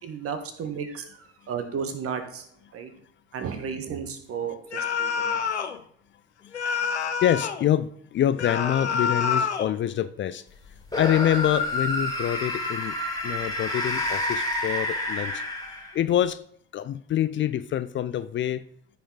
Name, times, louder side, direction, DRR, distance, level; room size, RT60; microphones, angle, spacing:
voice 1, 0.0-2.9 3.3-5.4, right 6 dB, 45° right, 8 dB, 1.5 m, -34 dB
sound 1, 4.7-5.8 6.5-7.7 8.4-9.7, left 6 dB, 90° left, 0.6 m, -27 dB
voice 2, 7.2-10.4 11.0-12.9 13.2-15.4 15.9-16.4 16.7-18.6, left 11 dB, 35° left, 13 dB, 0.5 m, -26 dB
sound 2, 10.9-16.1, left 1 dB, 10° left, 2.6 m, -29 dB
14.0 x 5.0 x 4.0 m, 0.62 s
figure-of-eight pair, 55°, 33 cm